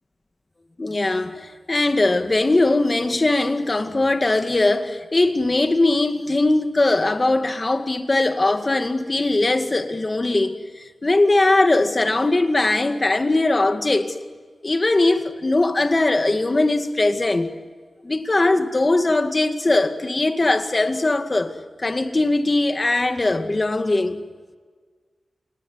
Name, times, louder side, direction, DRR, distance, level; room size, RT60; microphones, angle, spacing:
voice 1, 0.8-14.2 14.6-17.6 18.0-24.2, left 2 dB, 30° left, 2.1 m, -20 dB
29.0 x 19.0 x 9.8 m
wide cardioid pair, 105°, 0 cm